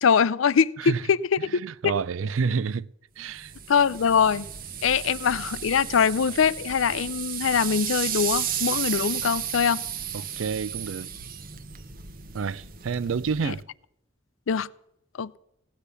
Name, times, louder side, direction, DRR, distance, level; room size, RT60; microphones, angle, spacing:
voice 1, 0.0-1.9 3.7-4.5 4.8-9.8 13.4-13.5 14.5-14.7 15.2-15.4, left 6 dB, 90° left, 0.5 m, -23 dB
voice 2, 1.5-2.9 3.2-3.5 10.1-11.1 12.3-13.6, right 5 dB, 85° right, 0.4 m, -29 dB
sound 1, 3.4-13.6, right 9 dB, 45° right, 0.9 m, -33 dB
17.0 x 9.9 x 6.8 m
head